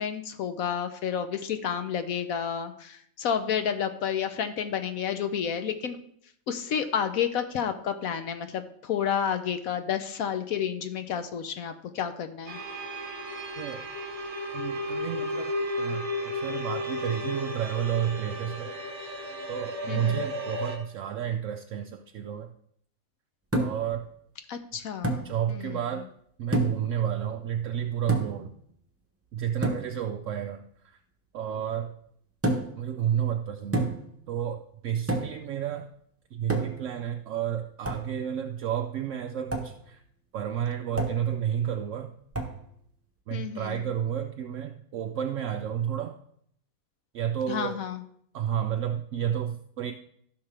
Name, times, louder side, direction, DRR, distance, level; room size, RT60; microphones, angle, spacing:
voice 1, 0.0-6.0 6.5-12.6 19.9-20.2 24.5-25.8 43.3-43.9 47.5-48.0, left 8 dB, 65° left, 9 dB, 1.0 m, -30 dB
sound 1, 12.5-20.8, left 1 dB, 35° right, 1.2 m, -34 dB
voice 2, 14.5-18.7 19.5-22.5 23.6-24.1 25.2-26.1 26.4-28.5 29.3-31.0 31.3-31.9 32.8-33.9 34.3-35.9 36.3-40.0 40.3-42.1 43.3-46.2 47.1-47.8 48.3-49.9, right 9 dB, 70° right, 5 dB, 0.7 m, -31 dB
sound 2, 23.5-23.9 25.0-25.3 26.5-26.9 28.1-28.5 29.6-29.9 32.4-32.8 33.7-34.1 35.1-35.4 36.5-36.9 37.8-38.1 39.5-39.7 41.0-41.3 42.3-42.6, right 1 dB, 10° right, 0.7 m, -29 dB
15.0 x 5.8 x 3.3 m, 0.67 s
omnidirectional pair, 1.7 m